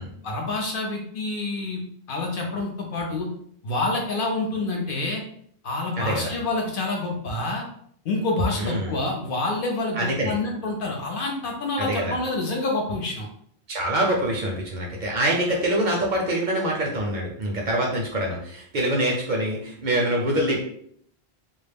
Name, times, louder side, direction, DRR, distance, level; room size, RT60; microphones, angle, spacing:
voice 1, 0.2-1.8 2.1-3.3 3.6-5.2 5.6-7.7 8.0-13.3, left 2 dB, 60° left, 0 dB, 0.7 m, -27 dB
voice 2, 6.0-6.3 8.5-8.9 10.0-10.3 11.8-12.2 13.7-20.6, right 1 dB, 55° right, -1 dB, 0.5 m, -25 dB
2.3 x 2.0 x 3.3 m, 0.65 s
omnidirectional pair, 1.1 m